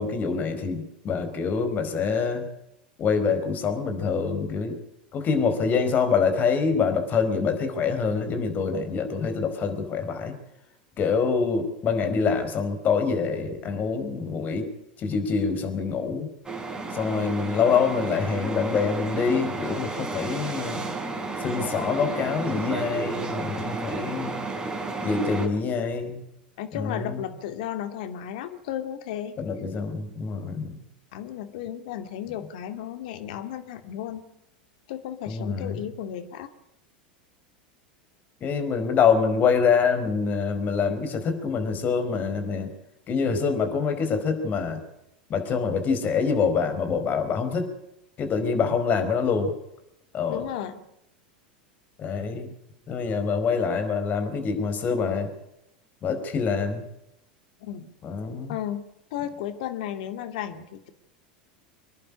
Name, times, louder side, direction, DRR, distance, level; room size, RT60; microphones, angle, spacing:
voice 1, 0.0-2.4 3.0-4.8 5.1-10.3 11.0-14.7 15.0-16.3 16.9-20.8 21.4-24.4 25.0-26.2 26.7-27.2 29.4-30.8 35.3-35.8 38.4-42.7 43.1-44.8 45.3-47.7 48.2-49.5 50.1-50.5 52.0-52.5 52.9-55.3 56.0-56.8 58.0-58.5, left 5 dB, 35° left, 8 dB, 4.7 m, -25 dB
sound 1, 16.4-25.5, right 3 dB, 15° right, 4.1 m, -32 dB
voice 2, 26.6-29.4 31.1-34.2 34.9-36.5 50.3-50.8 57.6-57.9 58.5-58.8 59.1-60.9, left 10 dB, 65° left, 9 dB, 2.4 m, -34 dB
26.5 x 11.0 x 9.8 m, 0.84 s
hypercardioid pair, 90°, 5 cm